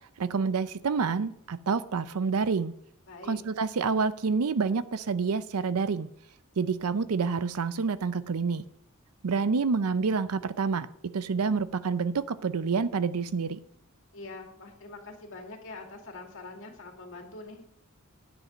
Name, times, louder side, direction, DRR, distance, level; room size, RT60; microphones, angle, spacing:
voice 1, 0.2-2.7 3.2-6.1 6.6-8.6 9.2-13.6, right 5 dB, 80° right, 15 dB, 0.5 m, -28 dB
voice 2, 3.1-3.4 14.1-17.6, left 3 dB, 65° left, 2 dB, 2.3 m, -44 dB
9.8 x 8.0 x 5.4 m, 0.70 s
head